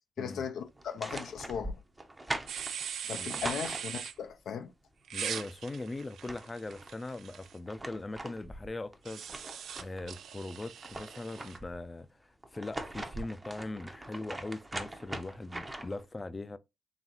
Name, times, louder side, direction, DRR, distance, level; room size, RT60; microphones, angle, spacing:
voice 1, 0.2-1.7 3.0-4.7, left 7 dB, 80° left, 0.5 m, -37 dB
sound 1, 0.8-4.3 5.7-5.8 6.1-6.9 7.4-10.1 10.5-11.8 12.4-16.0, right 1 dB, 20° right, 0.7 m, -42 dB
sound 2, 2.5-4.1 5.1-7.5 9.0-11.6, right 8 dB, 75° right, 0.4 m, -40 dB
voice 2, 5.1-9.3 9.7-16.6, left 2 dB, 25° left, 0.5 m, -40 dB
3.9 x 3.2 x 3.0 m
cardioid pair, 85°, 0 cm